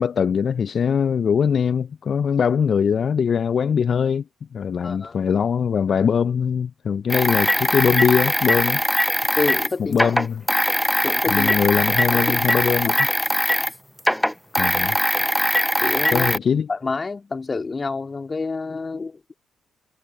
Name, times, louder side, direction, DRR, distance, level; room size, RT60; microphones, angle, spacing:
voice 1, 0.0-4.2 4.5-8.8 9.9-10.4 11.3-13.1 14.6-15.0 16.1-16.7, left 7 dB, 55° left, 0.6 m, -21 dB
voice 2, 4.8-5.2 9.4-10.1 11.0-11.6 11.9-12.5 12.8-12.9 15.4-15.5 15.8-16.3 16.7-19.2, left 4 dB, 35° left, 2.2 m, -28 dB
sound 1, 7.1-13.7 14.0-16.4, equal, 5° left, 0.8 m, -21 dB
hypercardioid pair, 45°, 0 cm